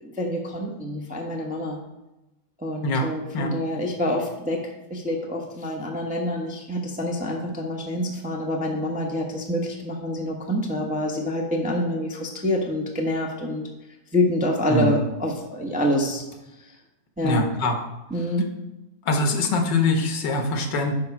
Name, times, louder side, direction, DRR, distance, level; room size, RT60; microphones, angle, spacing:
voice 1, 0.0-1.8 2.6-13.7 14.1-16.2 17.2-17.5 18.1-18.5, left 1 dB, 5° right, 0 dB, 0.6 m, -27 dB
voice 2, 14.7-15.0 17.2-17.8 19.1-20.9, left 2 dB, 75° left, 4 dB, 1.7 m, -23 dB
10.0 x 3.5 x 5.9 m, 0.97 s
omnidirectional pair, 1.9 m